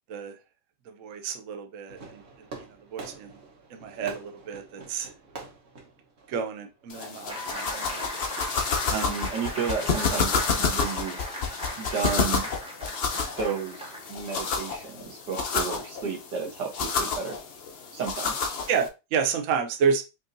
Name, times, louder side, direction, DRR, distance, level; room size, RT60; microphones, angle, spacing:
voice 1, 0.9-2.2 2.9-3.3 3.7-5.1 6.3-8.1 8.9-9.2 18.7-20.0, right 6 dB, 65° right, 5 dB, 0.8 m, -30 dB
Fireworks, 1.9-6.9, right 4 dB, 45° right, 1.2 m, -45 dB
sound 1, 6.9-18.9, left 5 dB, 70° left, 0.5 m, -30 dB
sound 2, 7.3-14.4, equal, 5° right, 0.4 m, -38 dB
voice 2, 8.9-11.3 11.8-12.5 13.1-17.4 17.9-18.4, right 6 dB, 80° right, 1 dB, 1.8 m, -33 dB
5.3 x 2.7 x 2.6 m, 0.27 s
omnidirectional pair, 1.8 m